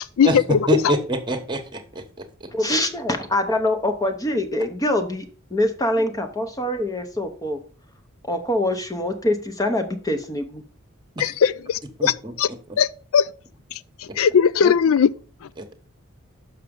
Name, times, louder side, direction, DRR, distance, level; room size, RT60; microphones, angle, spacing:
voice 1, 0.2-0.9 11.2-12.5 12.8-13.3 14.0-15.1, left 7 dB, 75° left, 0.4 m, -19 dB
voice 2, 0.7-2.0 12.0-12.3, equal, 20° right, 1.1 m, -24 dB
voice 3, 2.5-5.3 5.5-7.6 8.3-10.6 14.6-14.7, left 1 dB, 15° left, 0.8 m, -24 dB
6.6 x 5.8 x 5.2 m
head